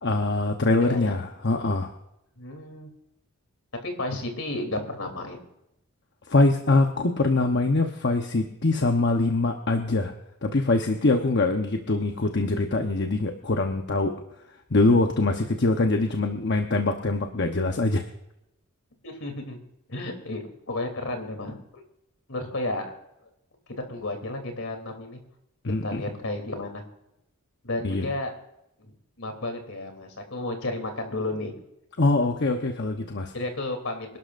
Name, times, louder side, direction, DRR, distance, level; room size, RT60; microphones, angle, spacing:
voice 1, 0.0-1.9 6.3-10.1 10.4-14.2 14.7-18.1 25.6-26.0 27.8-28.0 32.0-33.3, left 2 dB, 55° left, 4 dB, 1.0 m, -23 dB
voice 2, 0.8-1.1 2.4-2.9 3.8-5.4 19.0-19.6 19.9-20.4 20.7-21.8 22.3-22.9 23.9-25.2 25.8-26.8 27.6-28.3 28.8-31.5 33.3-34.2, left 2 dB, 70° left, 4 dB, 3.1 m, -32 dB
26.0 x 12.0 x 2.6 m, 0.83 s
head